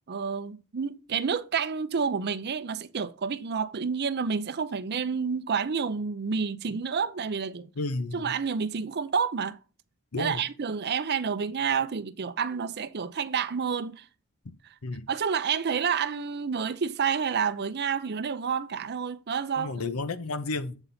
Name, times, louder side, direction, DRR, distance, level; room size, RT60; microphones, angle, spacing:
voice 1, 0.1-7.7 8.1-9.6 10.2-14.1 15.1-19.7, right 6 dB, 50° right, 0.6 m, -29 dB
voice 2, 7.8-8.3 10.1-10.4 14.8-15.1 19.6-20.8, left 3 dB, 80° left, 0.8 m, -32 dB
8.0 x 4.0 x 5.7 m
head